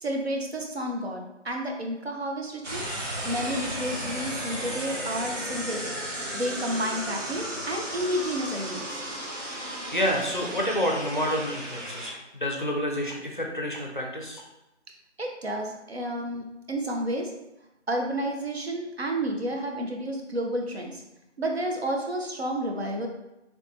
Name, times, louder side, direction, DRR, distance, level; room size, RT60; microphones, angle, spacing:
voice 1, 0.0-2.9 3.2-5.9 6.3-9.0 15.2-17.3 17.9-21.0 21.4-23.1, right 1 dB, 60° right, 1 dB, 0.6 m, -31 dB
sound 1, 2.6-12.1, right 1 dB, 90° right, 1.1 m, -34 dB
voice 2, 9.4-14.4, equal, 45° left, 0 dB, 0.5 m, -29 dB
3.4 x 2.9 x 2.5 m, 0.94 s
figure-of-eight pair, 165°, 36 cm